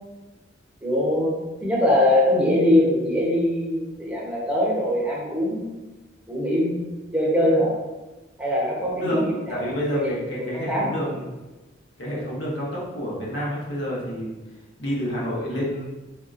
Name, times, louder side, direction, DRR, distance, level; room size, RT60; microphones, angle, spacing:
voice 1, 0.8-1.3 1.6-5.7 6.3-6.8 7.1-7.7 8.4-9.6 9.9-10.9, left 1 dB, 5° right, -6 dB, 0.8 m, -22 dB
voice 2, 8.9-9.2 9.5-11.3 12.0-14.3 14.8-15.9, equal, 75° left, -5 dB, 1.0 m, -28 dB
3.6 x 2.9 x 2.5 m, 1.1 s
head